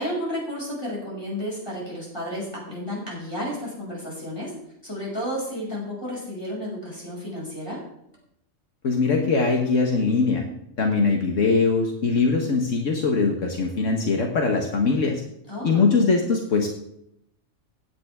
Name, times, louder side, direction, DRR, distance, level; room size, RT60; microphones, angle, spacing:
voice 1, 0.0-4.6 4.8-7.8 15.5-15.9, equal, 20° left, -4 dB, 6.1 m, -32 dB
voice 2, 8.8-10.5 10.8-15.2 15.6-16.7, left 4 dB, 75° left, 1 dB, 1.7 m, -21 dB
16.5 x 9.7 x 3.6 m, 0.75 s
omnidirectional pair, 1.3 m